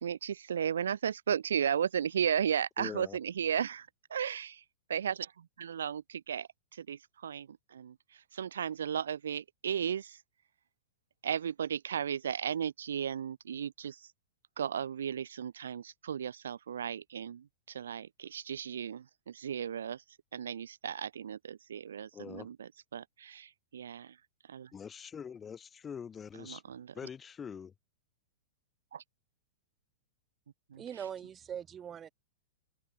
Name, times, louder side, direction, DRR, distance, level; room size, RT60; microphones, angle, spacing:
voice 1, 0.0-4.6 4.9-8.0 8.3-10.2 11.2-14.0 14.6-20.0 20.3-24.1 24.5-24.7 26.4-26.9 28.9-29.0 30.7-30.8, right 8 dB, 80° right, 0.4 m, -35 dB
voice 2, 2.8-3.2 22.1-22.5 24.7-26.6 26.9-27.7, left 7 dB, 20° left, 0.6 m, -44 dB
voice 3, 30.7-32.1, right 8 dB, 25° right, 1.1 m, -41 dB
hypercardioid pair, 120°, 0 cm